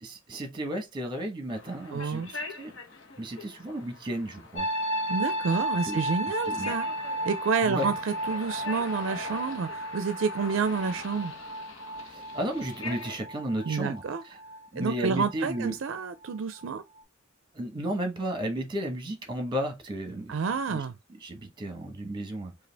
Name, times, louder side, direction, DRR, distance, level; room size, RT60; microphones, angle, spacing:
voice 1, 0.0-2.7 3.2-4.7 5.8-6.0 6.4-6.7 7.6-7.9 12.0-14.0 14.7-15.7 17.5-20.4 20.7-20.8 21.2-22.5, right 1 dB, 25° right, 1.1 m, -33 dB
traffic lights message, 1.5-13.2, left 3 dB, 65° left, 1.0 m, -43 dB
voice 2, 1.9-2.3 5.1-6.9 7.3-11.3 13.6-14.2 14.8-16.8 20.3-20.9, right 5 dB, 65° right, 0.4 m, -29 dB
sound 1, 4.5-16.3 16.6-17.0, right 1 dB, 30° left, 1.3 m, -34 dB
5.0 x 2.4 x 3.3 m
head